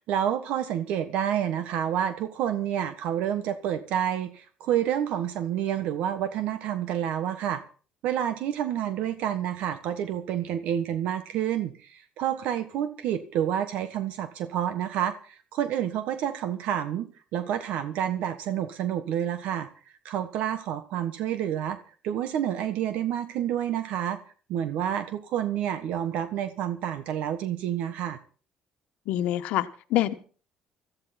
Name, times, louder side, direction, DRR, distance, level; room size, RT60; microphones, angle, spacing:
voice 1, 0.0-7.6 8.0-19.7 20.0-21.8 22.0-24.2 24.5-28.2, right 10 dB, 75° right, 1.3 m, -29 dB
voice 2, 29.1-30.1, left 13 dB, 80° left, 1.3 m, -26 dB
17.0 x 14.5 x 4.3 m
cardioid pair, 100°, 2 cm